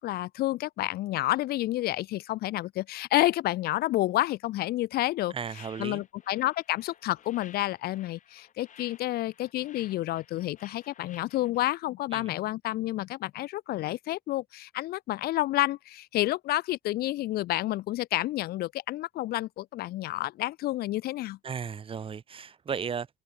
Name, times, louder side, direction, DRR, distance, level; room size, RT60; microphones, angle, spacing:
voice 1, 0.0-5.3 5.8-21.4, left 16 dB, 65° left, 0.5 m, -29 dB
voice 2, 5.3-6.0 12.1-12.3 21.4-23.1, right 6 dB, 30° right, 1.1 m, -35 dB
sound 1, 5.5-11.6, left 9 dB, 50° left, 7.2 m, -54 dB
open air
cardioid pair, 110°, 17 cm